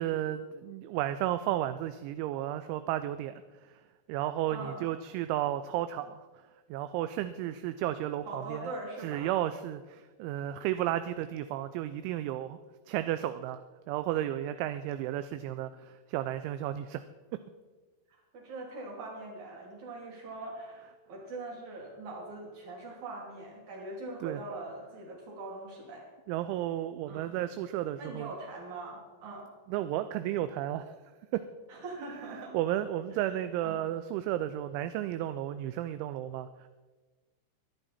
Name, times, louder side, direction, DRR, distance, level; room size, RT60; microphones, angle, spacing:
voice 1, 0.0-3.4 3.7-3.8 4.1-6.3 6.7-8.7 9.0-12.6 12.9-17.0 17.3-17.4 24.2-24.4 26.3-28.3 29.7-31.0 31.3-31.5 32.3-36.7, right 13 dB, 85° right, 11 dB, 2.8 m, -33 dB
voice 2, 4.5-4.8 8.3-9.4 10.6-10.8 18.1-26.1 27.1-27.3 28.0-29.5 31.7-32.6 33.1-33.3 33.6-33.8, right 2 dB, 40° right, -1 dB, 3.7 m, -42 dB
23.5 x 9.0 x 4.2 m, 1.3 s
omnidirectional pair, 5.7 m